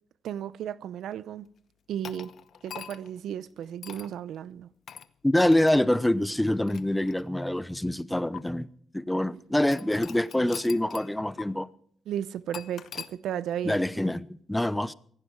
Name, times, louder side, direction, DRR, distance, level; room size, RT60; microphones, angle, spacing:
voice 1, 0.2-1.5 1.9-2.3 2.6-4.7 9.3-9.4 12.1-13.8, right 10 dB, 80° right, 0.7 m, -34 dB
sound 1, 2.0-3.2 3.8-4.1 4.9-5.1 5.5-5.7 6.4-7.6 8.3-8.4 9.7-11.1 11.4-11.5 12.5-13.1, left 8 dB, 70° left, 0.9 m, -43 dB
voice 2, 5.2-8.7 8.9-11.7 13.6-14.9, left 1 dB, 10° left, 0.9 m, -25 dB
17.5 x 15.0 x 4.6 m
supercardioid pair, 65°, 0 cm